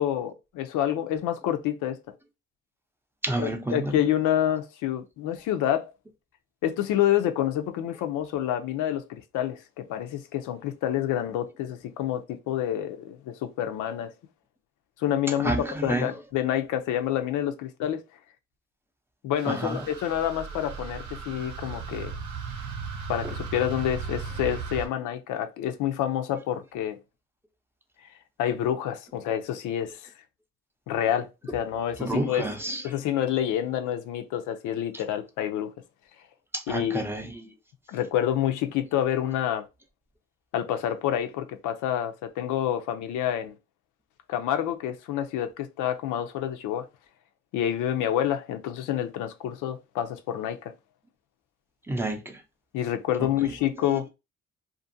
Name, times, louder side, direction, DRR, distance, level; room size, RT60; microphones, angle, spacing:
voice 1, 0.0-2.0 3.4-5.9 6.6-14.1 15.0-18.0 19.2-22.1 23.1-27.0 28.4-30.0 30.9-32.5 32.8-35.7 36.7-37.0 37.9-39.7 40.5-43.5 44.3-46.9 47.5-50.7 52.7-54.1, left 11 dB, 85° left, 0.5 m, -28 dB
voice 2, 3.2-4.0 15.4-16.1 19.5-19.9 32.0-32.8 36.5-37.5 51.9-52.4 53.2-53.3, right 1 dB, 10° right, 0.5 m, -29 dB
sound 1, 19.4-24.9, right 5 dB, 80° right, 0.9 m, -36 dB
2.5 x 2.5 x 2.6 m
cardioid pair, 90°, 30 cm